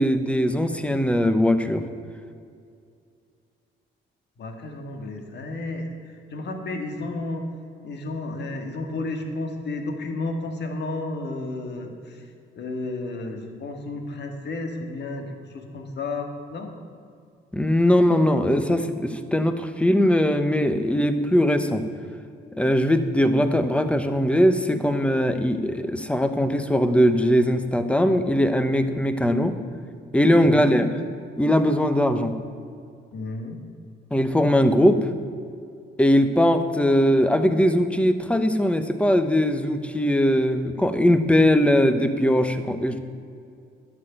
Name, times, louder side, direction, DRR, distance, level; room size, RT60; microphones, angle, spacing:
voice 1, 0.0-1.8 17.5-21.8 22.6-29.6 30.1-30.9 31.4-32.3 34.1-35.1 36.0-43.0, equal, 5° left, 9 dB, 1.0 m, -20 dB
voice 2, 4.4-5.9 6.3-7.5 7.8-12.2 12.6-15.3 15.5-16.7 30.4-30.8 33.1-33.6, left 2 dB, 60° left, 4 dB, 1.9 m, -32 dB
11.0 x 6.8 x 9.0 m, 2.3 s
cardioid pair, 90°, 20 cm